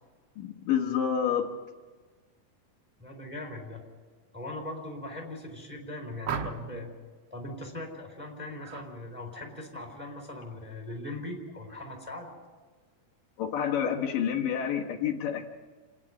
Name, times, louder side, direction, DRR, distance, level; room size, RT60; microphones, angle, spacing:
voice 1, 0.4-1.5 13.4-15.4, left 8 dB, 75° left, 1 dB, 3.0 m, -28 dB
voice 2, 3.0-3.8 4.3-6.9 7.3-12.4, left 1 dB, 5° right, 1 dB, 3.4 m, -40 dB
sound 1, 6.2-6.9 8.6-8.9 9.3-9.7, right 6 dB, 65° right, 1.8 m, -36 dB
28.5 x 10.0 x 9.7 m, 1.4 s
omnidirectional pair, 4.0 m